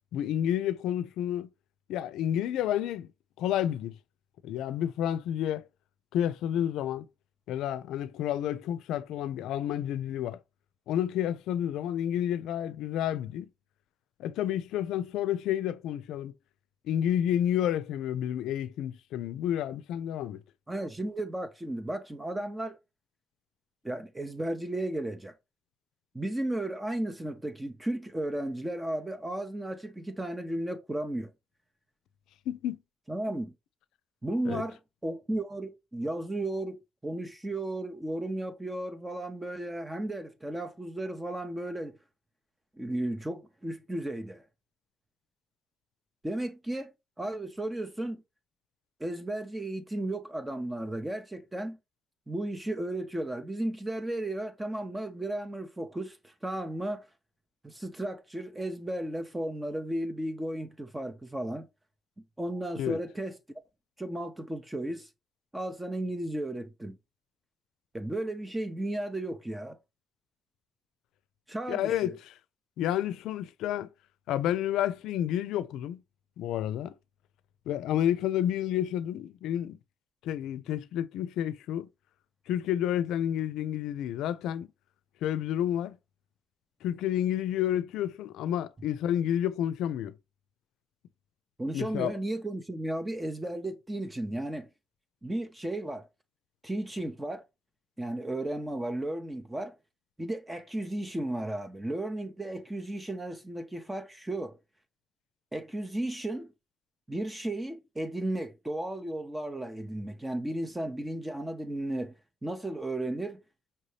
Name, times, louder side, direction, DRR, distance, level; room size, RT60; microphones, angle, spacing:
voice 1, 0.1-1.5 1.9-3.1 3.4-4.0 4.4-5.7 6.1-7.1 7.5-10.4 10.9-13.5 14.2-16.3 16.8-20.4 32.5-32.8 34.5-34.6 62.8-63.0 71.7-72.3 72.8-73.9 74.3-76.0 76.4-76.9 77.7-79.8 80.2-81.9 82.5-84.7 85.2-86.0 86.8-90.1 91.7-92.1, left 11 dB, 90° left, 0.4 m, -30 dB
voice 2, 20.7-22.8 23.8-25.3 26.1-31.3 33.1-33.5 34.2-34.8 35.0-42.0 42.8-44.4 46.2-48.2 49.0-51.8 52.3-57.1 57.6-61.7 62.4-63.4 64.0-65.1 65.5-67.0 67.9-69.8 71.5-72.1 91.6-94.7 95.2-96.1 96.6-97.4 98.0-99.8 100.2-104.6 105.5-106.5 107.1-112.1 112.4-113.4, right 1 dB, 15° right, 0.6 m, -34 dB
5.5 x 2.7 x 3.2 m
cardioid pair, 90°, 0 cm